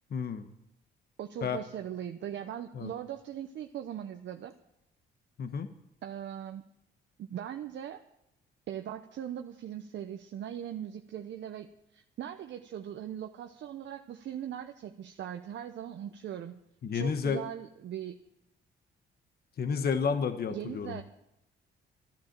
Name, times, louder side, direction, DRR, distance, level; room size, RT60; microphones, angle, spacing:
voice 1, 0.1-0.5 1.4-1.6 2.7-2.9 5.4-5.7 16.8-17.4 19.6-21.0, left 6 dB, 50° left, 8 dB, 1.1 m, -31 dB
voice 2, 1.2-4.5 6.0-6.6 7.2-8.0 8.7-16.6 16.9-18.2 20.5-21.0, right 10 dB, 65° right, 6 dB, 0.8 m, -40 dB
12.0 x 10.5 x 7.4 m, 0.82 s
cardioid pair, 90°, 20 cm